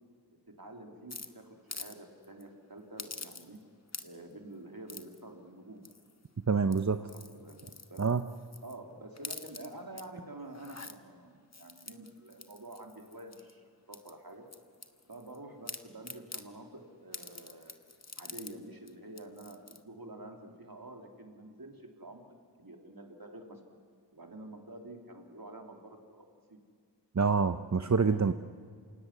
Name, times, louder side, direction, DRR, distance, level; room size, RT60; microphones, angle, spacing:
voice 1, 0.5-3.6 4.0-5.8 7.0-8.1 8.6-14.4 15.1-17.7 18.2-22.2 22.6-23.6 24.1-26.6 27.7-28.2, right 1 dB, 55° right, 2 dB, 3.4 m, -48 dB
sound 1, 1.1-2.0 2.2-2.4 3.0-3.6 3.9-4.3 4.9-5.2 5.8-6.2 6.6-8.8 9.1-10.0 10.5-10.9 11.5-13.5 13.9-15.4 15.7-16.5 17.1-18.5 18.9-19.0 19.2-19.8, left 3 dB, 40° left, 1.3 m, -46 dB
voice 2, 6.5-7.0 8.0-8.2 27.1-28.3, right 5 dB, 40° right, 9 dB, 0.7 m, -26 dB
27.5 x 16.5 x 9.8 m, 2.2 s
wide cardioid pair, 45°, 42 cm